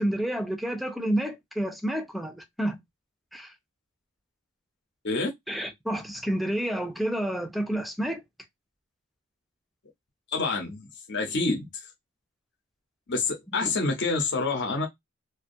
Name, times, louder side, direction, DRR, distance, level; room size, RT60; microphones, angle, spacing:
voice 1, 0.0-2.8 3.3-3.5 5.5-8.2, right 1 dB, ahead, 0.3 m, -29 dB
voice 2, 10.3-11.9 13.1-14.9, left 3 dB, 55° left, 0.7 m, -27 dB
2.5 x 2.3 x 2.6 m
head